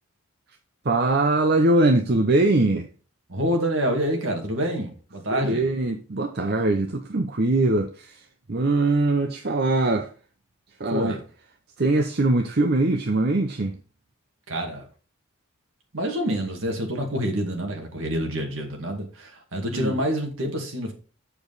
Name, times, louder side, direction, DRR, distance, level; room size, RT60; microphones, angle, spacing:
voice 1, 0.8-2.9 5.3-8.2 8.5-10.1 10.8-11.2 11.8-13.8 19.7-20.0, right 2 dB, 45° right, 0.7 m, -22 dB
voice 2, 3.3-5.6 10.9-11.2 14.5-14.9 15.9-20.9, equal, 65° right, 2.1 m, -27 dB
7.0 x 6.9 x 4.1 m
head